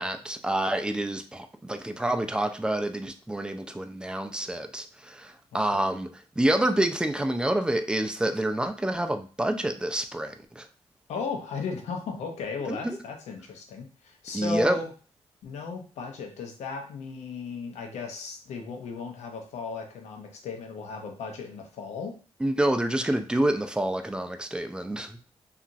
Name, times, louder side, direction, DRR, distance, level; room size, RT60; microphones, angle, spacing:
voice 1, 0.0-6.1 6.4-10.7 12.7-13.0 14.3-14.8 22.4-25.2, right 1 dB, 10° right, 0.3 m, -28 dB
voice 2, 5.5-5.9 11.1-14.9 15.4-22.2, left 4 dB, 90° left, 0.6 m, -35 dB
2.9 x 2.4 x 2.5 m
cardioid pair, 85°, 11 cm